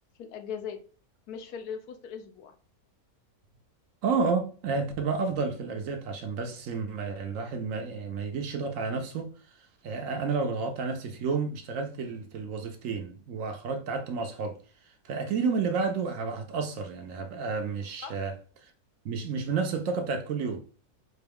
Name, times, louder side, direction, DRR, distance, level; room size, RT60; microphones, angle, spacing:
voice 1, 0.2-0.8 1.3-2.5 10.2-10.3 18.0-18.2, left 7 dB, 85° left, 1.1 m, -39 dB
voice 2, 4.0-9.3 9.8-14.6 15.0-18.3 18.6-18.7 19.0-20.6, right 4 dB, 65° right, 0.9 m, -31 dB
4.3 x 2.3 x 3.4 m
omnidirectional pair, 1.6 m